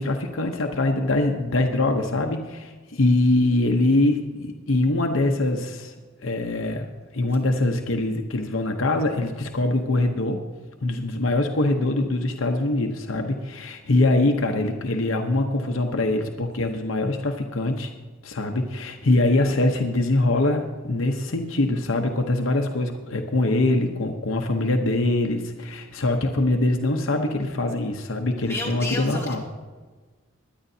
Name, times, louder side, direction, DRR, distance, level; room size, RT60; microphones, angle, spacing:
voice 1, 0.0-5.9 6.2-10.4 10.8-17.9 18.2-29.4, left 2 dB, 65° left, 4 dB, 0.9 m, -23 dB
voice 2, 28.4-29.5, left 2 dB, 15° left, -5 dB, 2.6 m, -32 dB
21.5 x 10.0 x 2.8 m, 1.4 s
head